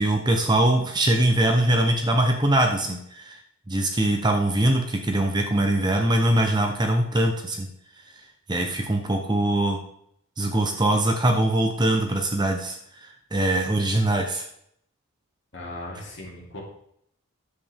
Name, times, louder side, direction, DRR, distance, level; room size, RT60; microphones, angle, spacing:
voice 1, 0.0-3.4 3.7-7.7 8.5-9.8 10.4-12.8 13.3-14.5, right 1 dB, 20° right, 3 dB, 0.8 m, -22 dB
voice 2, 15.5-16.6, left 1 dB, 55° left, -3 dB, 2.8 m, -37 dB
9.9 x 7.8 x 3.6 m, 0.70 s
head